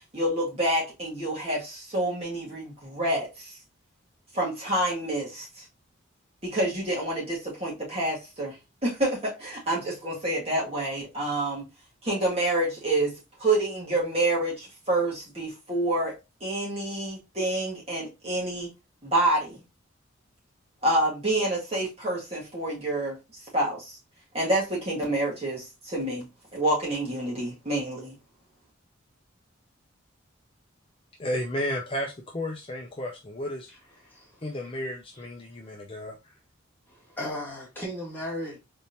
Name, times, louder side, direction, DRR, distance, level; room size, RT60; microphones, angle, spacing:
voice 1, 0.1-3.5 4.3-5.6 6.4-8.6 8.8-11.6 12.0-13.1 13.4-16.1 16.4-18.7 19.0-19.6 20.8-23.2 23.5-24.0 24.3-28.2, right 1 dB, 30° right, 2.0 m, -28 dB
voice 2, 31.2-34.0 34.4-36.4, equal, 25° left, 0.5 m, -33 dB
voice 3, 34.0-34.4 36.9-38.6, equal, 10° left, 2.0 m, -36 dB
4.1 x 3.6 x 2.7 m
head